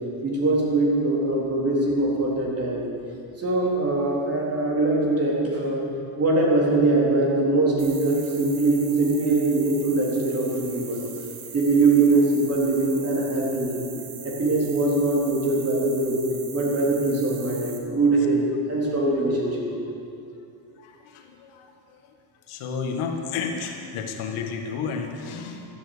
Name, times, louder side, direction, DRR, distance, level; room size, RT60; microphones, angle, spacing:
voice 1, 0.2-2.8 3.4-5.9 6.2-11.1 11.5-13.9 14.2-16.2 16.5-19.7, right 2 dB, 30° right, -3 dB, 3.8 m, -22 dB
sound 1, 7.8-17.8, right 8 dB, 90° right, 2.4 m, -41 dB
voice 2, 20.8-21.7 22.5-25.7, left 5 dB, 75° left, 3 dB, 2.0 m, -31 dB
15.0 x 12.5 x 6.9 m, 2.6 s
cardioid pair, 150°, 50 cm